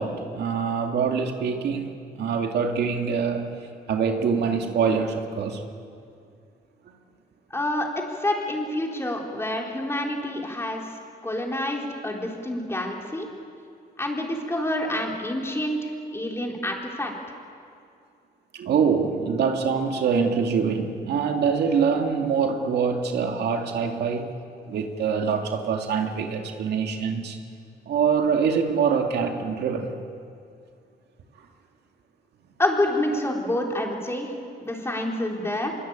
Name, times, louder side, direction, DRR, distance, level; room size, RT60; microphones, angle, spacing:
voice 1, 0.0-3.5 3.9-5.6 18.5-24.3 24.7-27.4 27.9-29.9, right 6 dB, 80° right, 3 dB, 2.4 m, -24 dB
voice 2, 7.5-10.8 11.2-13.3 14.0-15.8 16.1-17.1 32.6-34.3 34.6-35.7, left 1 dB, 15° left, 0 dB, 4.1 m, -27 dB
24.0 x 23.0 x 9.0 m, 2.4 s
cardioid pair, 115°, 17 cm